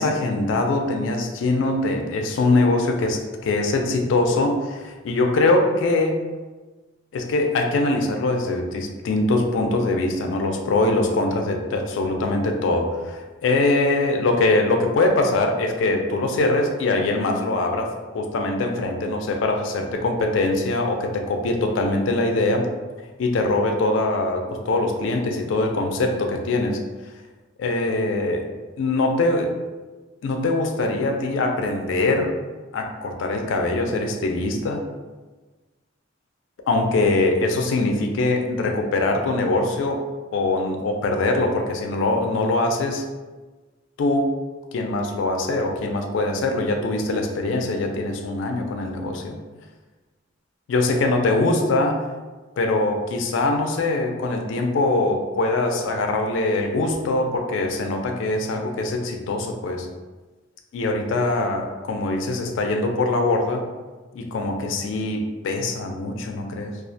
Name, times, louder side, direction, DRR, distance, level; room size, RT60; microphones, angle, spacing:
voice 1, 0.0-6.2 7.1-22.7 23.2-26.8 27.6-28.4 28.8-29.5 30.2-32.3 32.7-34.8 36.7-40.0 40.3-43.0 44.0-44.3 44.7-49.4 50.7-52.0 52.6-59.9 60.7-63.6 64.1-66.7, left 2 dB, 75° left, 4 dB, 0.3 m, -22 dB
2.3 x 2.0 x 2.6 m, 1.3 s
head